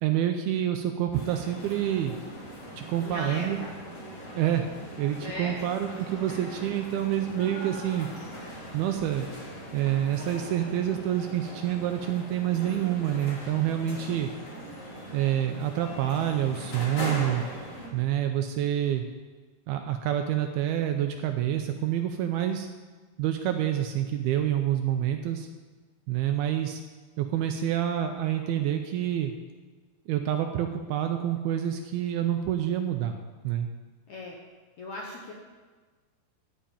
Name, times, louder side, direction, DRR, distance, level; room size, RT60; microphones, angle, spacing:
voice 1, 0.0-2.2 2.8-3.6 4.3-4.6 5.0-8.1 8.7-9.3 9.7-14.3 15.1-17.4 17.9-19.1 19.7-22.7 23.2-25.5 26.1-26.8 27.2-29.3 30.1-33.2 33.4-33.7, right 11 dB, 85° right, 5 dB, 2.3 m, -27 dB
sound 1, 1.1-17.9, equal, 45° left, 1.0 m, -40 dB
voice 2, 3.0-3.7 5.2-5.6 34.1-34.4 34.8-35.3, left 1 dB, 70° left, -2 dB, 1.8 m, -37 dB
12.5 x 5.2 x 8.7 m, 1.4 s
omnidirectional pair, 4.9 m